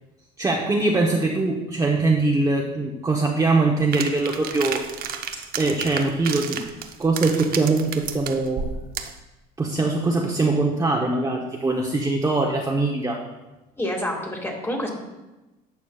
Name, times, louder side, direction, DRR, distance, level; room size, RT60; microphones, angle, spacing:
voice 1, 0.4-4.8 5.6-6.7 7.0-8.6 9.6-13.2, right 3 dB, 15° right, -2 dB, 0.9 m, -22 dB
sound 1, 3.9-9.2, right 7 dB, 50° right, 0.7 m, -32 dB
voice 2, 13.8-14.9, left 1 dB, 10° left, 1 dB, 1.9 m, -28 dB
11.0 x 7.0 x 2.3 m, 1.0 s
supercardioid pair, 100°, 19 cm